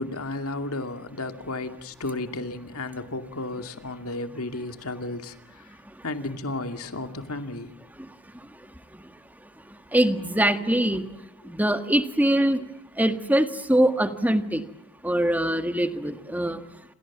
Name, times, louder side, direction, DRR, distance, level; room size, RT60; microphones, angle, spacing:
voice 1, 0.0-5.6 6.0-7.7, left 2 dB, 90° left, 7 dB, 2.5 m, -33 dB
voice 2, 9.9-11.0 11.5-12.6 13.0-14.6 15.0-16.6, right 1 dB, 5° right, 8 dB, 1.7 m, -23 dB
28.5 x 27.0 x 7.4 m, 0.88 s
head